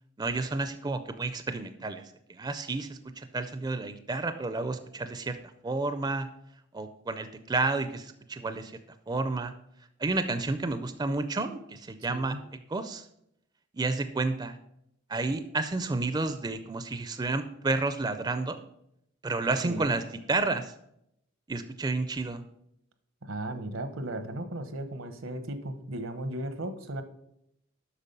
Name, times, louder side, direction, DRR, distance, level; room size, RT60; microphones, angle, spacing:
voice 1, 0.2-2.0 2.3-5.4 5.6-6.3 6.7-8.7 9.1-9.5 10.0-12.3 12.7-13.1 13.7-14.6 15.1-18.6 19.2-20.0 20.3-20.7 21.5-22.4, right 3 dB, 20° right, 10 dB, 0.4 m, -30 dB
voice 2, 19.6-19.9 23.2-27.0, right 1 dB, 80° right, 9 dB, 0.9 m, -36 dB
8.2 x 5.8 x 5.4 m, 0.77 s
head